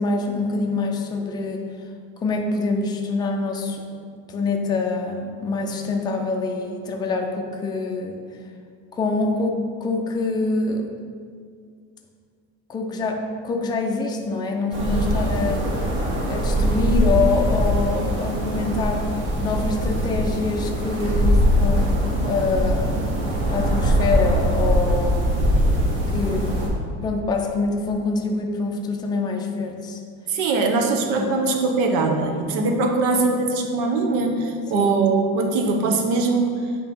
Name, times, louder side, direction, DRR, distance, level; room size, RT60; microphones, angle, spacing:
voice 1, 0.0-1.6 2.2-3.8 4.3-8.2 8.9-10.9 12.7-15.6 16.3-19.1 19.4-25.3 26.1-26.5 27.0-30.0 31.2-31.3 33.1-33.2 34.7-34.9, left 3 dB, 15° left, 1 dB, 0.4 m, -25 dB
sound 1, 14.7-26.7, equal, 40° right, 1.3 m, -22 dB
voice 2, 30.3-36.6, right 3 dB, 75° right, 3 dB, 0.9 m, -21 dB
8.8 x 3.0 x 5.3 m, 2.1 s
cardioid pair, 175°, 31 cm